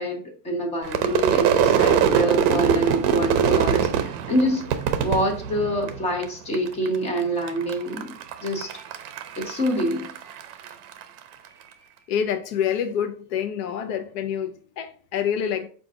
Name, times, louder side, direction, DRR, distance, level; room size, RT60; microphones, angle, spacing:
voice 1, 0.0-4.8 5.0-8.1 8.4-8.7 9.4-10.1, equal, 15° left, 0.4 m, -26 dB
Crowd / Fireworks, 0.8-6.2 6.5-7.2 7.5-11.0, right 8 dB, 50° right, 0.5 m, -22 dB
voice 2, 12.1-15.7, left 8 dB, 85° left, 0.6 m, -27 dB
5.0 x 2.4 x 3.6 m
cardioid pair, 175°, 46 cm